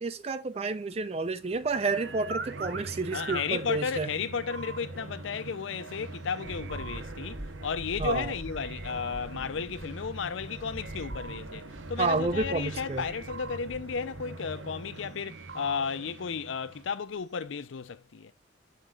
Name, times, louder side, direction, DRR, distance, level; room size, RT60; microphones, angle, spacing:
voice 1, 0.0-4.1 8.0-8.3 12.0-13.0, right 3 dB, 30° right, 0.4 m, -30 dB
sound 1, 0.5-6.2 6.4-8.3 8.6-10.6 10.8-12.8 13.0-14.9 15.2-17.1 17.4-17.5, right 3 dB, 55° right, 0.9 m, -46 dB
sound 2, 1.2-17.0, right 2 dB, 85° right, 0.8 m, -43 dB
voice 2, 3.1-18.3, left 6 dB, 85° left, 0.5 m, -34 dB
sound 3, 6.4-14.2, equal, 10° right, 3.1 m, -45 dB
7.5 x 6.6 x 2.3 m
head